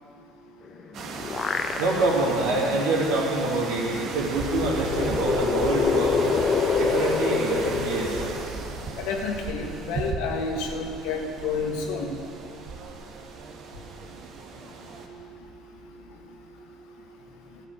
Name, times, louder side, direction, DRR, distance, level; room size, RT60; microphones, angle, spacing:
sound 1, 0.7-2.3 2.8-2.9 4.1-8.9, left 5 dB, 40° left, 1.1 m, -26 dB
sound 2, 0.9-15.1, right 4 dB, 55° right, 1.5 m, -36 dB
voice 1, 1.8-6.2 6.7-8.2, right 2 dB, 70° right, -2 dB, 2.8 m, -25 dB
voice 2, 9.0-12.2, left 4 dB, 65° left, 2 dB, 1.6 m, -30 dB
12.5 x 7.5 x 9.3 m, 2.6 s
hypercardioid pair, 65°, 0 cm